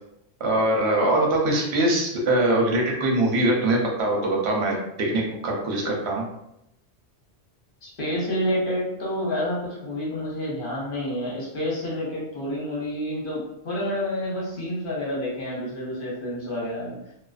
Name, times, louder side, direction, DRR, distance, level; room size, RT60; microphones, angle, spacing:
voice 1, 0.4-6.2, right 1 dB, 70° right, -1 dB, 0.9 m, -22 dB
voice 2, 7.8-17.0, left 1 dB, 55° left, -5 dB, 0.9 m, -29 dB
2.4 x 2.2 x 2.3 m, 0.81 s
omnidirectional pair, 1.2 m